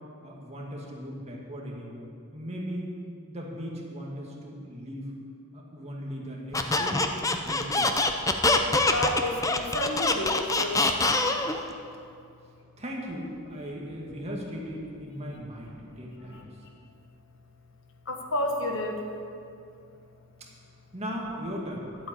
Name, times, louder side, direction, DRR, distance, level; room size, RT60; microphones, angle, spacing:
voice 1, 0.2-2.9 3.3-5.1 5.5-7.0 7.4-7.9 12.8-16.5 20.9-21.8, equal, 30° right, -2 dB, 2.1 m, -38 dB
Squeak, 6.5-11.6, left 2 dB, 15° left, 0.6 m, -24 dB
voice 2, 8.8-11.4 15.4-15.5 15.9-16.0 16.3-16.4 18.0-19.0, left 1 dB, 60° left, 3 dB, 1.5 m, -31 dB
11.5 x 8.5 x 8.4 m, 2.5 s
head